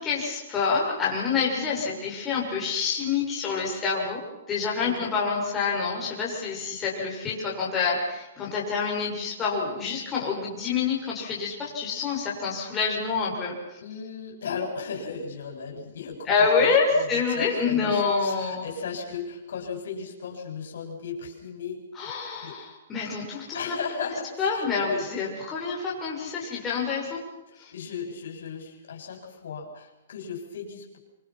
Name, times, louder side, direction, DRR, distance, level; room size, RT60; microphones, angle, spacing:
voice 1, 0.0-13.6 16.3-18.6 21.9-23.8 24.4-27.2 27.6-27.7, left 5 dB, 15° left, -4 dB, 6.8 m, -27 dB
voice 2, 1.8-2.1 4.8-5.1 13.8-16.3 16.9-22.2 22.4-22.5 23.5-25.1 27.5-31.0, left 5 dB, 75° left, 2 dB, 7.5 m, -36 dB
25.5 x 25.5 x 6.0 m, 0.98 s
hypercardioid pair, 160°, 0 cm